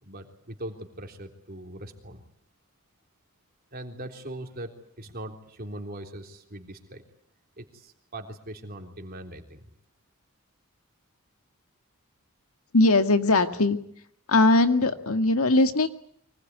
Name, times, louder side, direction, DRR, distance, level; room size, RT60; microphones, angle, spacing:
voice 1, 0.0-2.2 3.7-4.7 5.0-7.0 7.6-9.6, right 1 dB, 45° right, 4 dB, 3.6 m, -40 dB
voice 2, 12.7-13.8 14.3-15.9, left 2 dB, 85° left, 8 dB, 2.0 m, -20 dB
24.5 x 19.5 x 9.5 m, 0.65 s
head